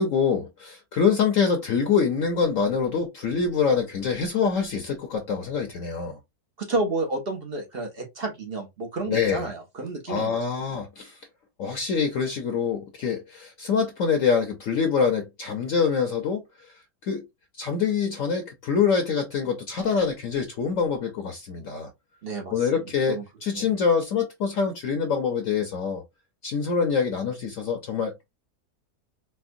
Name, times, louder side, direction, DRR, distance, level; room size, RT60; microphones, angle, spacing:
voice 1, 0.0-6.2 9.1-9.5 10.1-11.2 11.6-16.7 17.0-17.2 17.6-21.9 22.5-26.0 26.4-28.1, left 6 dB, 60° left, 0.9 m, -25 dB
voice 2, 6.6-10.4 22.2-22.6 23.1-23.2 23.5-23.7, right 2 dB, 50° right, 0.8 m, -30 dB
4.3 x 2.1 x 2.5 m
omnidirectional pair, 1.7 m